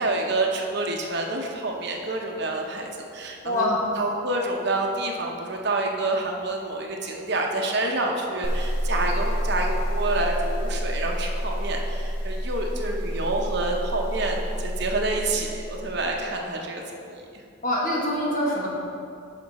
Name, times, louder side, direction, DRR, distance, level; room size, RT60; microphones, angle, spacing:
voice 1, 0.0-3.7 4.0-17.4, right 2 dB, 55° right, 1 dB, 0.9 m, -28 dB
voice 2, 3.4-3.9 17.6-18.7, left 1 dB, 40° left, -4 dB, 1.5 m, -24 dB
sound 1, 8.4-16.2, equal, 85° left, 1.5 m, -29 dB
10.0 x 5.9 x 4.2 m, 2.6 s
head